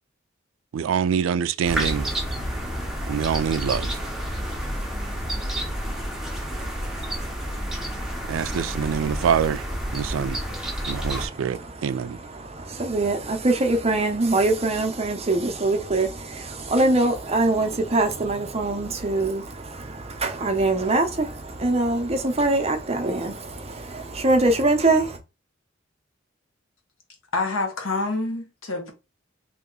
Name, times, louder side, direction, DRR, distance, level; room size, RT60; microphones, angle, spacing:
voice 1, 0.7-2.1 3.1-3.9 8.3-9.6 9.9-10.4 10.9-12.2, right 7 dB, 70° right, 0.3 m, -25 dB
sound 1, 1.6-11.3, right 1 dB, ahead, 0.9 m, -29 dB
voice 2, 11.2-25.2, right 2 dB, 30° right, 0.7 m, -23 dB
voice 3, 27.3-28.9, left 3 dB, 85° left, 1.3 m, -27 dB
3.0 x 2.9 x 3.8 m
head